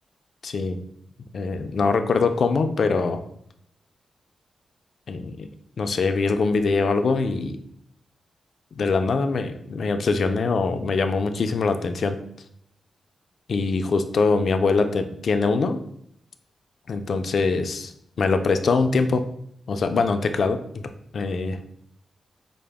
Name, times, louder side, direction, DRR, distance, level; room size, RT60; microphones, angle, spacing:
voice 1, 0.4-0.8 1.3-3.2 5.1-5.5 5.8-7.6 8.8-12.2 13.5-15.8 16.9-17.9 18.2-19.2 19.7-21.6, left 4 dB, 65° left, 7 dB, 0.3 m, -23 dB
4.7 x 2.0 x 3.4 m, 0.71 s
wide cardioid pair, 100°, 0 cm